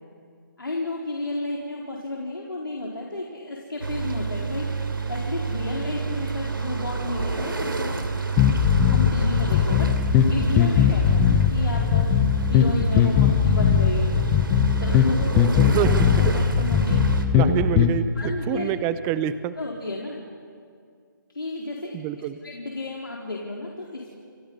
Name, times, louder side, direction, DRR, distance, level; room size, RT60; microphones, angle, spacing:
voice 1, 0.6-8.1 8.9-9.9 10.3-14.1 14.8-17.6 18.2-18.7 19.6-20.2 21.3-22.0 22.4-24.1, left 2 dB, 85° left, -3 dB, 4.4 m, -32 dB
sound 1, 3.8-17.3, right 4 dB, 80° right, 3.2 m, -29 dB
sound 2, 8.4-17.9, left 9 dB, 15° left, 1.1 m, -20 dB
voice 2, 15.3-16.4 17.3-19.6 21.9-22.4, right 11 dB, 15° right, 13 dB, 0.7 m, -27 dB
29.0 x 27.5 x 5.6 m, 2.3 s
figure-of-eight pair, 155°, 11 cm